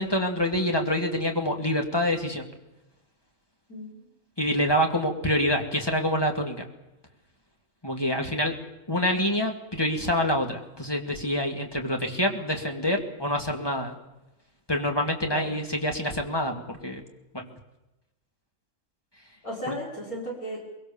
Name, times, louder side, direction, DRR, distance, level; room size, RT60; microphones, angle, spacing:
voice 1, 0.0-2.5 4.4-6.6 7.8-8.6 8.9-14.0 14.7-17.0 17.3-17.5 19.7-19.8, equal, 15° left, 2 dB, 2.3 m, -26 dB
voice 2, 3.7-4.1 15.3-15.5 19.4-20.6, equal, 80° left, -2 dB, 5.9 m, -35 dB
23.0 x 22.0 x 7.2 m, 0.98 s
omnidirectional pair, 1.5 m